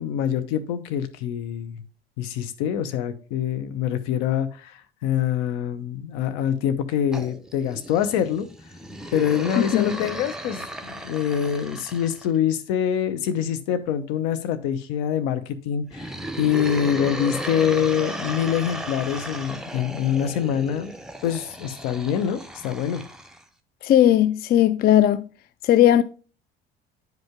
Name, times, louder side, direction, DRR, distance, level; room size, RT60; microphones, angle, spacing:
voice 1, 0.0-1.8 2.2-8.5 9.1-20.9 21.2-23.0, left 9 dB, 60° left, 0.9 m, -25 dB
sound 1, 7.1-12.3 15.9-23.4, right 1 dB, ahead, 0.8 m, -35 dB
voice 2, 9.6-9.9 23.8-25.2 25.6-26.0, left 11 dB, 30° left, 0.4 m, -17 dB
9.1 x 5.2 x 3.6 m
figure-of-eight pair, 60°, 30 cm